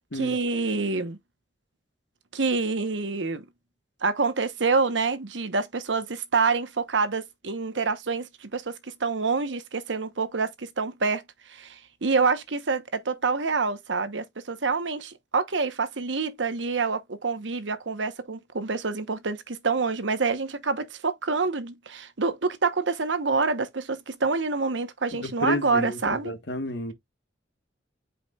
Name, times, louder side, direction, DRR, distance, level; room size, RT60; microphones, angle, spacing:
voice 1, 0.1-1.2 2.3-3.5 4.0-11.2 11.5-26.3, right 4 dB, 90° right, 1.1 m, -27 dB
voice 2, 25.1-26.0 26.2-26.9, left 1 dB, 70° left, 1.4 m, -30 dB
8.2 x 5.0 x 2.4 m
head